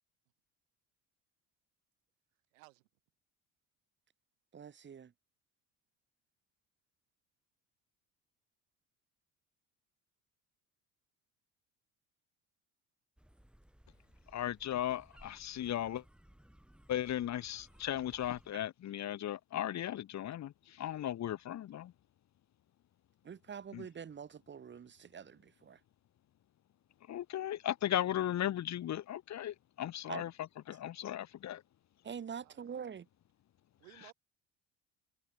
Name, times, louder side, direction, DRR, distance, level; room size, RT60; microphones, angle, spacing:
voice 1, 2.5-2.9 32.4-32.7 33.8-34.1, right 24 dB, 90° right, 5.1 m, -58 dB
voice 2, 4.5-5.1 23.2-25.8 30.1-30.2 32.0-33.1, right 7 dB, 30° right, 1.1 m, -45 dB
sound 1, 13.2-18.5, equal, ahead, 4.3 m, -61 dB
voice 3, 14.3-16.0 16.9-21.9 23.7-23.9 27.1-31.6, left 11 dB, 45° left, 1.1 m, -36 dB
supercardioid pair, 80°, 38 cm